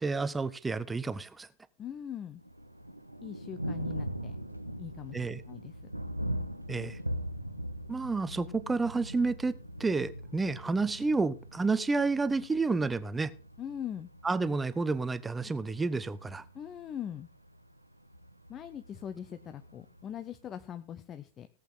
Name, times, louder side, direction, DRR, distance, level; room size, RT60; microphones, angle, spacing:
voice 1, 0.0-1.5 5.1-5.4 6.7-7.0 7.9-9.5 9.8-13.3 14.2-16.4, right 3 dB, 10° right, 0.8 m, -30 dB
voice 2, 1.8-2.4 3.2-4.3 4.8-5.8 13.6-14.1 16.5-17.3 18.5-21.5, left 9 dB, 25° left, 0.7 m, -41 dB
Thunder, 2.4-20.4, equal, 90° right, 0.8 m, -41 dB
17.5 x 8.3 x 3.9 m
figure-of-eight pair, 90°, 0 cm